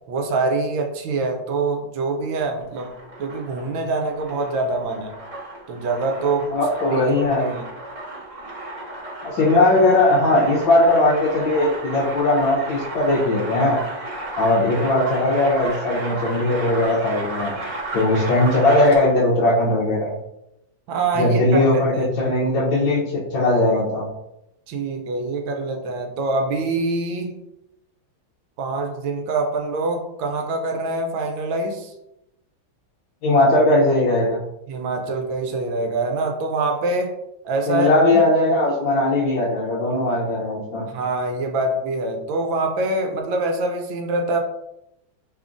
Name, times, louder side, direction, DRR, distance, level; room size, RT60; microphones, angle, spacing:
voice 1, 0.1-2.9 3.2-5.1 5.7-6.6 6.9-7.0 7.4-7.6 20.9-21.8 24.7-27.4 28.6-31.9 34.7-37.1 37.4-38.2 40.9-44.4, right 3 dB, 80° right, 3 dB, 1.3 m, -25 dB
sound 1, 2.6-19.2, right 2 dB, 30° right, 0.6 m, -33 dB
voice 2, 6.5-7.5 9.2-13.8 14.4-17.6 17.9-20.2 21.2-24.1 33.2-34.4 37.7-40.9, left 2 dB, 75° left, -6 dB, 1.4 m, -19 dB
3.7 x 3.5 x 2.5 m, 0.84 s
omnidirectional pair, 2.2 m